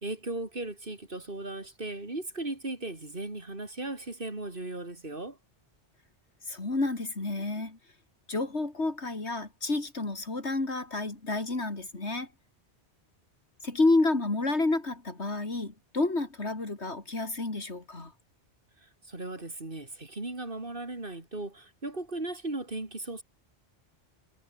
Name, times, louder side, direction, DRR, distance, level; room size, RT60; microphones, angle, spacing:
voice 1, 0.0-5.4 18.8-23.2, right 2 dB, 55° right, 3.7 m, -37 dB
voice 2, 6.5-7.8 8.3-12.3 13.6-18.1, left 2 dB, 80° left, 4.1 m, -29 dB
omnidirectional pair, 1.1 m